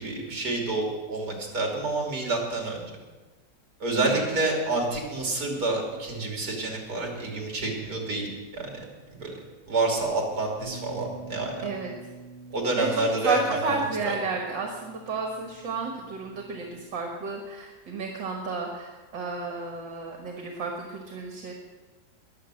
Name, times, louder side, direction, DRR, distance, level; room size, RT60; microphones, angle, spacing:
voice 1, 0.0-2.8 3.8-8.3 8.5-8.8 9.1-9.4 9.7-11.7 12.5-13.4 13.6-13.7, right 2 dB, 45° right, 0 dB, 3.4 m, -28 dB
voice 2, 4.0-4.4 11.6-11.9 12.8-21.5, right 4 dB, 70° right, 1 dB, 2.2 m, -32 dB
Bass guitar, 10.6-16.8, right 4 dB, 25° left, 5.6 m, -46 dB
21.5 x 7.2 x 6.4 m, 1.3 s
omnidirectional pair, 2.1 m